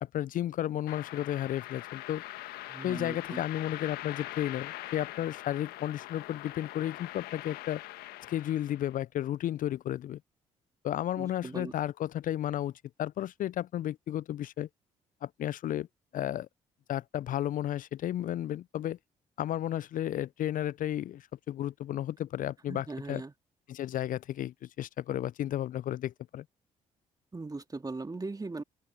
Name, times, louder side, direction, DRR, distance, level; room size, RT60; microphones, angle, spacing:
voice 1, 0.0-2.2 2.8-7.8 8.3-10.2 10.8-12.7 13.0-14.7 15.2-15.9 16.1-16.5 16.9-19.0 19.4-23.2 23.7-26.4, left 12 dB, 55° left, 0.5 m, -33 dB
sound 1, 0.9-9.0, left 17 dB, 70° left, 1.5 m, -43 dB
voice 2, 2.7-3.4 11.2-11.7 22.7-23.3 27.3-28.6, right 3 dB, 20° right, 2.5 m, -39 dB
open air
hypercardioid pair, 45°, 17 cm